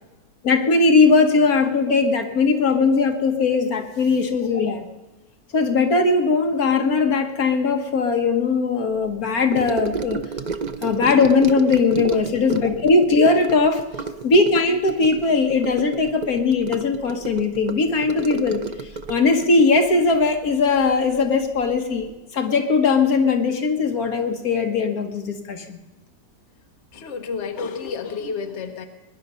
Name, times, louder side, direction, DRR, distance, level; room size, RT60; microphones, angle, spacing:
voice 1, 0.4-4.8 5.5-10.2 10.8-13.9 14.2-25.8, left 4 dB, 60° left, 6 dB, 1.6 m, -19 dB
Gurgling / Sink (filling or washing) / Trickle dribble, 9.5-21.2 21.4-21.8 22.0-22.1, right 4 dB, 80° right, 0.4 m, -32 dB
voice 2, 12.3-12.7 26.9-28.8, left 5 dB, 45° left, 5 dB, 1.4 m, -31 dB
21.5 x 10.5 x 5.5 m, 1.1 s
omnidirectional pair, 1.8 m